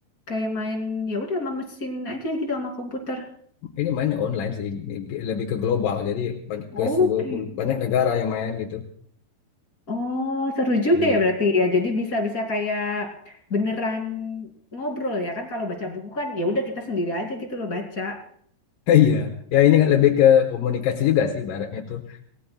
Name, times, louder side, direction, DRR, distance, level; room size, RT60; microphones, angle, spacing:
voice 1, 0.3-3.3 6.7-7.4 9.9-18.2, left 2 dB, 25° left, 1 dB, 2.4 m, -26 dB
voice 2, 3.8-8.8 11.0-11.2 18.9-22.0, left 9 dB, 70° left, 1 dB, 2.2 m, -22 dB
28.0 x 18.5 x 2.3 m, 0.62 s
omnidirectional pair, 5.2 m